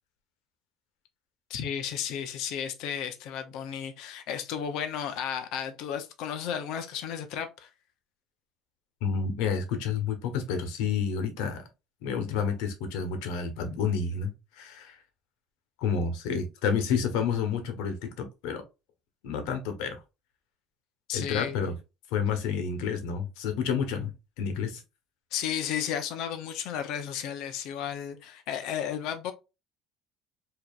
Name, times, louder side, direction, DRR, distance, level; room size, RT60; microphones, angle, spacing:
voice 1, 1.5-7.7 21.1-21.7 25.3-29.3, left 9 dB, 60° left, 0.7 m, -33 dB
voice 2, 9.0-11.6 12.0-15.0 15.8-18.6 19.2-20.0 21.1-21.8 22.1-24.1 24.4-24.8, left 6 dB, 85° left, 1.2 m, -29 dB
4.9 x 2.9 x 2.5 m
cardioid pair, 180°, 0 cm